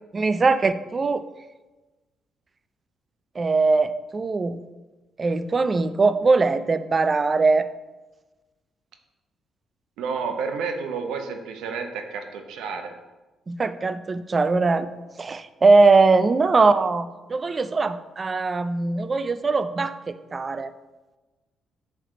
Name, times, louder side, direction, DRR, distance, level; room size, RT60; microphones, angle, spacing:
voice 1, 0.1-1.3 3.4-4.6 5.2-7.7 13.5-14.9 15.2-20.7, right 3 dB, 35° right, 12 dB, 0.3 m, -21 dB
voice 2, 10.0-12.9, right 5 dB, 85° right, 5 dB, 0.7 m, -30 dB
7.4 x 3.3 x 3.8 m, 1.2 s
cardioid pair, 90°, 0 cm